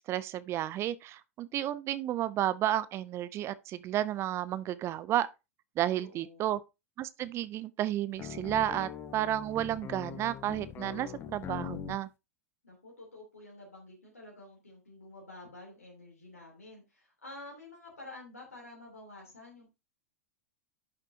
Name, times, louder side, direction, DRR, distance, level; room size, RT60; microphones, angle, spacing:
voice 1, 0.1-5.3 5.8-6.6 7.0-12.1, right 12 dB, 35° right, 0.6 m, -32 dB
voice 2, 6.0-6.5 12.6-19.7, left 2 dB, 85° left, 3.4 m, -50 dB
sound 1, 8.2-12.0, left 8 dB, 30° left, 1.3 m, -42 dB
11.0 x 6.7 x 2.8 m
figure-of-eight pair, 95°, 8 cm